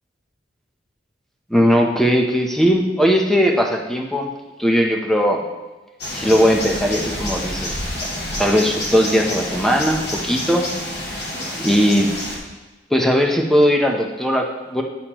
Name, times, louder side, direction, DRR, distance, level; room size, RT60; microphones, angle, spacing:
voice 1, 1.5-4.3 4.6-5.4 6.1-7.7 8.4-10.7 11.6-12.1 12.9-14.8, equal, ahead, 1 dB, 0.6 m, -18 dB
sound 1, 6.0-12.4, left 1 dB, 65° left, 1.7 m, -28 dB
8.7 x 6.4 x 3.0 m, 1.2 s
head